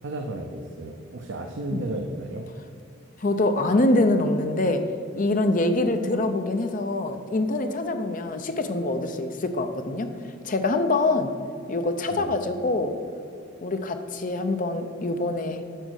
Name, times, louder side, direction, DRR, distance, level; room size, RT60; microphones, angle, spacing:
voice 1, 0.0-2.5 12.1-12.4, right 1 dB, 60° right, 3 dB, 0.6 m, -33 dB
voice 2, 3.2-4.9 5.1-10.1 10.4-11.3 11.7-13.0 13.6-15.6, left 2 dB, 40° left, 7 dB, 0.6 m, -24 dB
9.0 x 5.2 x 6.4 m, 2.5 s
head